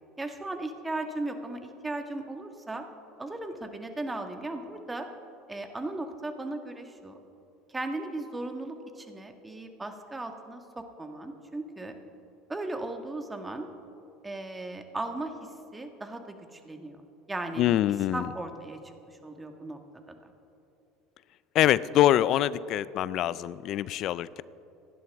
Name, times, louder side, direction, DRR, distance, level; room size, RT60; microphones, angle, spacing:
voice 1, 0.2-2.8 3.2-5.1 5.5-7.2 7.7-12.0 12.5-13.7 14.2-17.0 17.3-17.7 18.1-18.8 19.1-19.8 20.1-20.2, right 2 dB, 15° right, 5 dB, 1.6 m, -37 dB
voice 2, 17.6-18.3 21.5-24.4, left 12 dB, 55° left, 18 dB, 0.4 m, -24 dB
26.5 x 11.5 x 3.6 m, 2.8 s
supercardioid pair, 90°, 0 cm